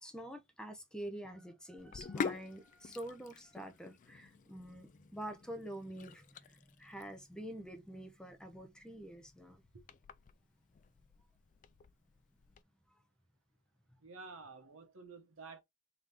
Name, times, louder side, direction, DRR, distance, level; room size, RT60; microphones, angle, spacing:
voice 1, 0.0-9.6 12.9-13.0, right 1 dB, 5° left, 0.8 m, -47 dB
Sink (filling or washing), 1.8-12.6, left 5 dB, 40° left, 0.3 m, -47 dB
voice 2, 14.0-15.6, right 4 dB, 70° right, 1.2 m, -51 dB
3.7 x 3.4 x 3.0 m
head